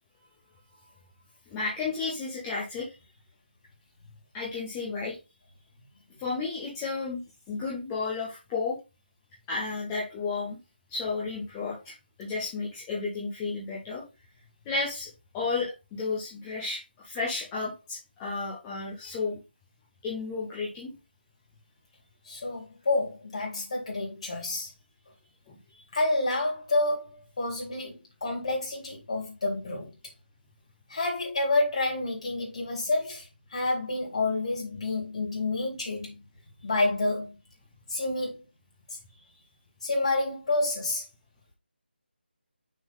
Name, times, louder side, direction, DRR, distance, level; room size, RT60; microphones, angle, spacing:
voice 1, 1.5-2.9 4.3-5.2 6.2-7.2 7.5-8.8 9.5-10.6 10.9-11.9 12.2-14.0 14.7-15.1 15.3-19.4 20.0-20.9 25.5-25.6, left 4 dB, 5° left, 0.5 m, -32 dB
voice 2, 22.3-24.7 25.9-29.9 30.9-33.2 33.5-36.2 36.6-37.4 37.9-38.4 39.8-41.0, left 2 dB, 35° left, 3.3 m, -29 dB
6.3 x 3.6 x 5.4 m
figure-of-eight pair, 180°, 6 cm